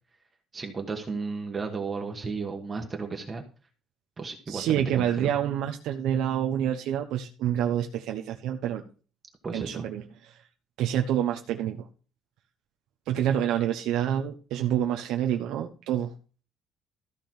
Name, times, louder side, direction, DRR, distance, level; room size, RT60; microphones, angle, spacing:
voice 1, 0.5-3.4 4.2-5.3 9.4-9.9, right 4 dB, 20° right, 3 dB, 1.3 m, -34 dB
voice 2, 4.5-8.8 9.5-10.4 10.8-11.9 13.1-16.1, right 10 dB, 80° right, 3 dB, 1.0 m, -27 dB
14.0 x 5.4 x 6.0 m, 0.37 s
cardioid pair, 175°, 0 cm